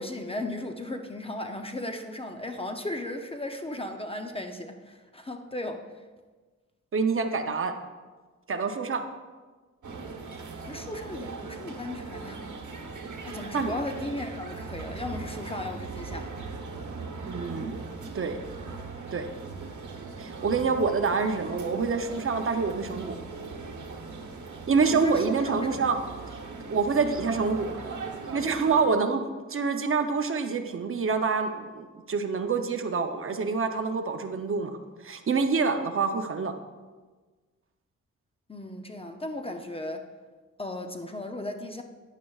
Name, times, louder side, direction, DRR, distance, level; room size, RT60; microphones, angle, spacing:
voice 1, 0.0-5.9 10.6-12.4 13.2-16.4 24.9-25.8 38.5-40.1 40.6-41.8, left 1 dB, 20° left, 5 dB, 0.6 m, -36 dB
voice 2, 6.9-7.7 8.5-9.0 13.5-13.7 17.3-17.8 18.1-18.4 19.1-19.3 20.2-23.2 24.7-26.0 26.7-27.8 28.3-29.2 29.5-34.8 35.0-36.5, right 5 dB, 45° right, 6 dB, 0.7 m, -26 dB
sound 1, 9.8-28.8, right 4 dB, 80° right, 1.1 m, -39 dB
11.5 x 9.9 x 2.4 m, 1.4 s
wide cardioid pair, 125°, 30 cm